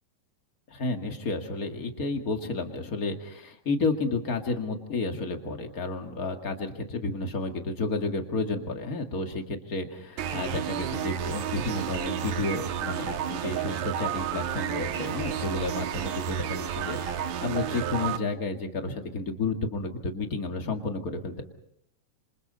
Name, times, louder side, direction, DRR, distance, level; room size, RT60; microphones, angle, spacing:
voice 1, 0.7-21.4, left 3 dB, 30° left, 4 dB, 2.0 m, -31 dB
sound 1, 10.2-18.2, right 9 dB, 70° right, 2.4 m, -31 dB
27.0 x 27.0 x 4.1 m, 0.71 s
omnidirectional pair, 3.7 m